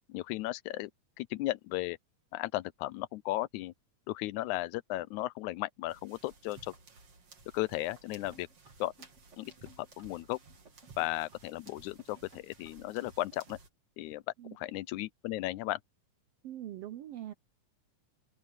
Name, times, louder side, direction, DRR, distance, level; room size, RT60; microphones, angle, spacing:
voice 1, 0.1-0.9 1.2-2.0 2.3-3.7 4.1-6.7 7.5-8.5 8.8-8.9 9.4-9.5 9.8-10.4 11.0-13.6 14.0-14.2 14.5-15.8, left 17 dB, 80° left, 1.9 m, -35 dB
sound 1, 5.9-13.7, right 4 dB, 50° right, 4.1 m, -57 dB
sound 2, 8.3-13.7, equal, 25° right, 3.1 m, -59 dB
voice 2, 16.4-17.3, right 12 dB, 80° right, 1.4 m, -42 dB
open air
omnidirectional pair, 3.5 m